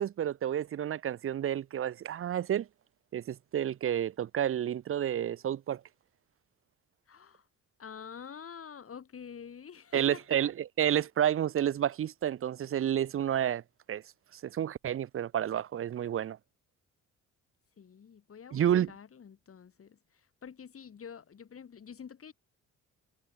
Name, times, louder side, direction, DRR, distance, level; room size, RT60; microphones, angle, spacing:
voice 1, 0.0-2.7 3.1-5.8 9.9-13.6 13.9-14.0 14.4-16.4 18.5-18.9, right 10 dB, 45° right, 0.6 m, -30 dB
voice 2, 7.1-7.5 7.8-10.4 17.8-22.3, left 7 dB, 50° left, 6.0 m, -48 dB
cardioid pair, 90°, 30 cm